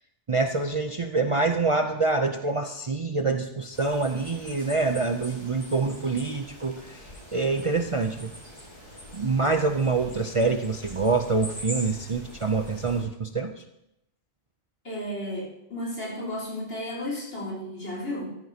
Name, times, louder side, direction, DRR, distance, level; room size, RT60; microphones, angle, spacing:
voice 1, 0.3-8.3 9.1-13.5, right 3 dB, 40° right, 5 dB, 0.4 m, -26 dB
sound 1, 3.7-13.0, equal, 40° left, 3.8 m, -43 dB
voice 2, 14.8-18.3, left 1 dB, 80° left, -3 dB, 4.0 m, -33 dB
14.5 x 14.0 x 2.8 m, 0.83 s
omnidirectional pair, 1.2 m